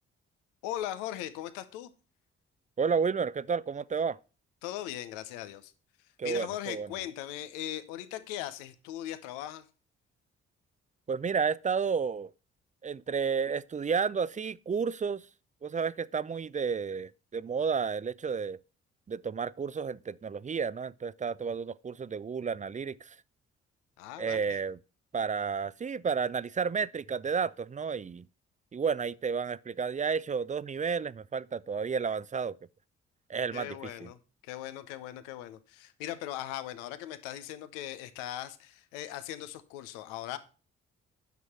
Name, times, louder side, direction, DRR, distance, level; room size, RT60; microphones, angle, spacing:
voice 1, 0.6-1.9 4.6-5.7 6.2-9.6 24.0-24.6 33.5-34.2 34.4-40.4, left 13 dB, 80° left, 0.8 m, -39 dB
voice 2, 2.8-4.2 6.2-6.9 11.1-12.3 12.8-15.2 15.6-18.6 19.1-23.1 24.2-24.8 25.1-28.3 28.7-32.6 33.3-34.1, right 6 dB, 25° right, 0.5 m, -31 dB
9.4 x 6.1 x 5.6 m
hypercardioid pair, 40°, 32 cm